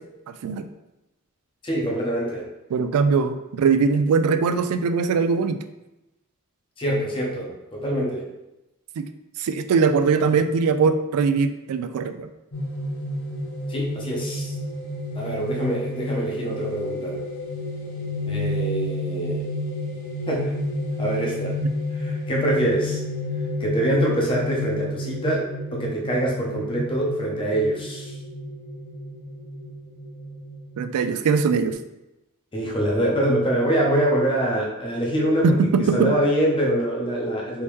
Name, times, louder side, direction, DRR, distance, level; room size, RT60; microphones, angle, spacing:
voice 1, 1.6-2.4 6.8-8.3 13.7-14.5 15.1-17.2 18.3-19.5 20.3-20.6 21.0-21.6 21.9-23.0 23.6-28.2 32.5-37.6, right 1 dB, 25° left, -2 dB, 0.7 m, -24 dB
voice 2, 2.7-5.6 9.0-9.1 9.4-12.3 30.8-31.8 35.4-36.1, right 5 dB, 75° right, 11 dB, 0.3 m, -21 dB
sound 1, 12.5-31.7, left 1 dB, 45° left, 0.9 m, -31 dB
3.5 x 2.8 x 3.1 m, 0.96 s
head